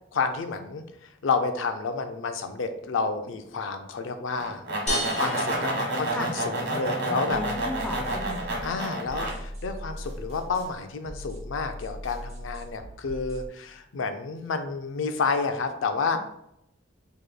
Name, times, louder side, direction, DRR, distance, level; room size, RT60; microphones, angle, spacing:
voice 1, 0.1-4.6 5.1-7.4 8.6-16.2, left 4 dB, 75° left, 7 dB, 0.4 m, -30 dB
sound 1, 4.4-9.3, right 1 dB, 60° right, 1.1 m, -29 dB
sound 2, 4.9-6.7, equal, 35° left, 0.7 m, -33 dB
voice 2, 7.1-8.7, left 1 dB, 5° left, 2 dB, 0.4 m, -35 dB
sound 3, 7.3-13.5, equal, 30° right, 0.7 m, -40 dB
4.8 x 3.0 x 2.2 m, 0.77 s
head